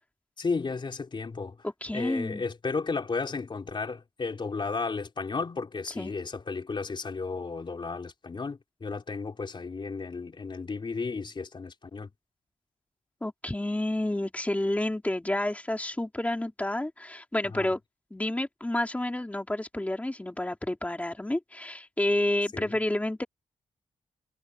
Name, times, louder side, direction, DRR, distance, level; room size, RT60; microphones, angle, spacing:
voice 1, 0.4-1.6 1.9-12.1 17.5-17.7 22.5-22.7, left 4 dB, 40° left, 4.1 m, -33 dB
voice 2, 1.8-2.4 6.0-6.1 13.2-17.8 18.1-23.2, left 1 dB, 10° left, 3.3 m, -30 dB
wide cardioid pair, 130°, 13 cm